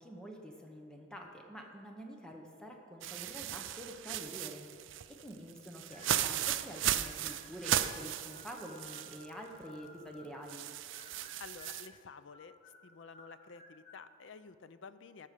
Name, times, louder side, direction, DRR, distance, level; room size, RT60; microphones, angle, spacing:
voice 1, 0.0-4.7 5.1-10.6, equal, 5° left, 1 dB, 0.8 m, -47 dB
sound 1, 3.0-9.3 9.6-9.7 10.5-11.9, right 11 dB, 70° right, 0.4 m, -36 dB
sound 2, 5.9-6.5 6.8-10.6 10.9-11.9 12.3-14.1, left 3 dB, 35° left, 1.6 m, -56 dB
voice 2, 11.4-12.6 12.8-15.3, left 5 dB, 65° left, 13 dB, 0.5 m, -51 dB
14.0 x 6.2 x 6.7 m, 2.3 s
head